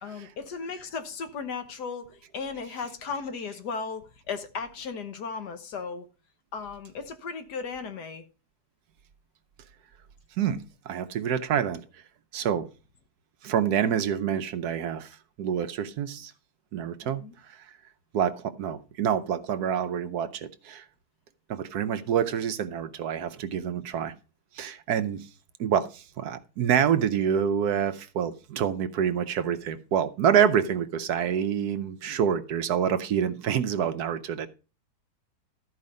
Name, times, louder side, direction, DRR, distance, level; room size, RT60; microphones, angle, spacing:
voice 1, 0.0-6.0 6.5-8.3 17.0-17.3, left 5 dB, 80° left, 1.7 m, -36 dB
voice 2, 10.4-11.8 12.3-12.7 13.4-16.3 16.7-17.7 18.1-20.8 21.5-24.1 24.5-25.3 25.6-34.5, right 8 dB, 70° right, 1.2 m, -27 dB
13.0 x 4.9 x 5.2 m
omnidirectional pair, 1.8 m